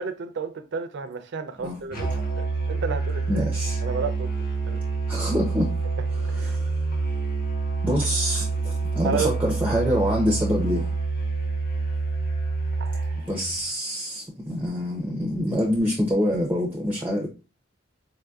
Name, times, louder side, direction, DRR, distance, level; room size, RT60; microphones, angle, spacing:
voice 1, 0.0-2.1 2.4-3.4 3.8-4.3 4.6-4.8 6.3-6.6 9.0-9.3 12.8-13.3, right 5 dB, 60° right, 0.4 m, -32 dB
Musical instrument, 1.9-13.6, right 4 dB, 50° left, 1.2 m, -27 dB
voice 2, 3.3-3.8 5.1-5.7 6.1-6.7 7.8-10.9 13.3-17.3, equal, 10° right, 0.5 m, -26 dB
4.0 x 2.6 x 2.3 m
head